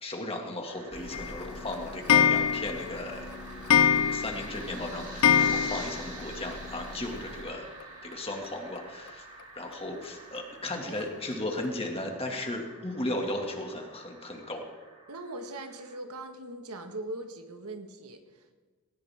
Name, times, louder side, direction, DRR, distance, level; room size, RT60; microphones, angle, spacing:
voice 1, 0.0-3.3 4.1-7.7 8.0-9.3 9.5-14.6, left 1 dB, 25° left, 2 dB, 2.2 m, -36 dB
sound 1, 0.6-16.0, right 3 dB, 40° right, 5.5 m, -48 dB
sound 2, 0.9-7.4, left 1 dB, 5° right, 2.4 m, -45 dB
Clock, 1.1-6.2 6.5-6.6 6.8-6.9 7.2-7.3 8.4-8.5 9.1-9.2 9.7-9.8 10.4-10.5 11.0-11.1 11.6-11.7, left 7 dB, 85° left, 0.6 m, -25 dB
voice 2, 15.1-18.5, right 2 dB, 80° right, 6 dB, 1.7 m, -41 dB
18.5 x 18.5 x 3.7 m, 1.3 s
head